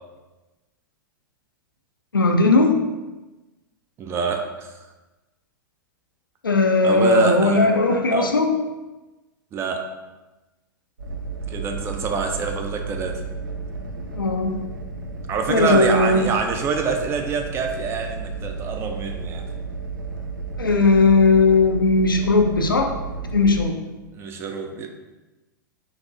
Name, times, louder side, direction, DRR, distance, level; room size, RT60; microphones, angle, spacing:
voice 1, 2.1-2.8 6.4-8.6 14.2-14.6 15.5-16.2 20.6-22.9 23.3-23.8, left 3 dB, 85° left, 4 dB, 0.4 m, -17 dB
voice 2, 4.0-4.7 6.8-7.7 8.1-8.3 9.5-9.9 11.5-13.2 15.3-19.5 24.1-24.9, right 5 dB, 25° right, 4 dB, 0.4 m, -25 dB
sound 1, 11.0-23.6, right 4 dB, 75° right, 0.5 m, -33 dB
4.0 x 2.9 x 2.4 m, 1.1 s
figure-of-eight pair, 100°, 11 cm